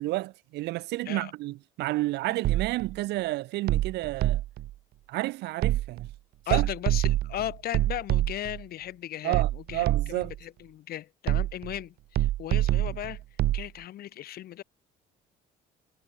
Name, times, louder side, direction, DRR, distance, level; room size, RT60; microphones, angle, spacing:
voice 1, 0.0-4.4 5.1-6.1 6.5-6.7 9.2-10.3 12.9-13.0, right 18 dB, 85° right, 1.5 m, -30 dB
sound 1, 2.4-3.0 3.7-4.7 5.6-6.1 6.5-8.6 9.3-10.4 11.3-11.8 12.2-13.7, right 15 dB, 65° right, 0.9 m, -26 dB
voice 2, 6.5-13.2 13.5-14.6, left 13 dB, 65° left, 2.0 m, -37 dB
cardioid pair, 110°, 17 cm